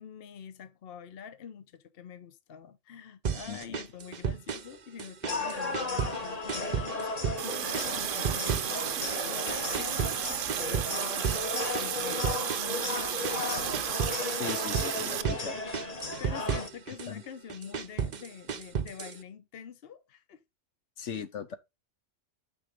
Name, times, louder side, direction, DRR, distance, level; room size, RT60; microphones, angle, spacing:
voice 1, 0.0-8.7 9.3-10.1 10.5-13.8 16.2-20.4, left 8 dB, 55° left, 1.0 m, -46 dB
sound 1, 3.2-4.7 5.0-6.2 6.5-7.4 7.7-9.2 9.5-14.2 14.5-15.4 15.7-17.1 17.5-19.2, right 7 dB, 45° right, 0.7 m, -34 dB
voice 2, 3.5-3.8 14.3-15.6 17.1-17.2 21.0-21.6, left 7 dB, 75° left, 1.2 m, -39 dB
sound 2, 5.2-16.7, left 3 dB, 30° left, 1.4 m, -35 dB
Water tap faucet, 7.4-15.2, right 10 dB, 90° right, 1.1 m, -33 dB
9.3 x 4.2 x 5.1 m
omnidirectional pair, 1.3 m